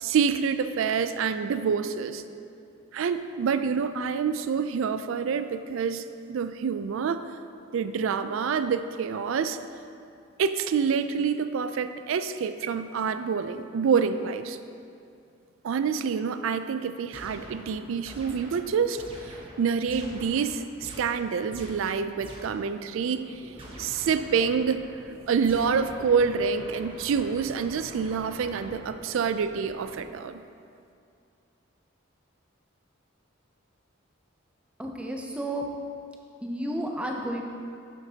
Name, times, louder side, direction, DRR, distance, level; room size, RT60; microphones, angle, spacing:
voice 1, 0.0-2.2 2.9-7.3 7.7-9.6 10.4-14.6 15.6-23.5 23.8-24.9 25.3-30.4, right 6 dB, 75° right, 11 dB, 0.3 m, -27 dB
sound 1, 17.1-22.8 23.6-24.9 25.4-29.1, right 1 dB, 25° right, 0.9 m, -45 dB
sound 2, 22.9-30.1, equal, 45° right, 1.1 m, -50 dB
voice 2, 34.8-35.6 36.4-37.4, right 1 dB, 5° right, 1 dB, 0.5 m, -31 dB
8.9 x 7.3 x 2.8 m, 2.5 s
head